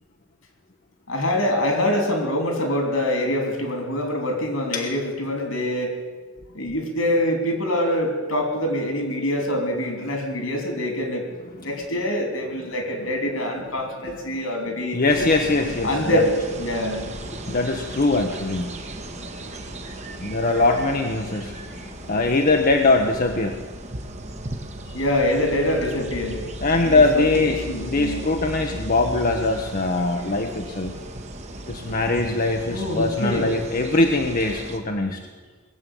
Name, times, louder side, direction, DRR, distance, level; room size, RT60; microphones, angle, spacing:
voice 1, 1.1-6.0 6.5-11.3 11.6-15.0 15.8-16.3 16.6-17.0 24.9-26.5 26.8-28.3 31.9-32.0 32.7-33.5, left 1 dB, 70° left, 4 dB, 3.5 m, -25 dB
voice 2, 14.1-14.4 14.9-16.3 17.3-19.5 20.0-23.6 26.6-30.9 31.7-35.2, left 2 dB, 40° left, 3 dB, 1.0 m, -22 dB
sound 1, 15.1-34.8, right 1 dB, 30° right, 1.3 m, -36 dB
20.0 x 7.7 x 9.2 m, 1.4 s
head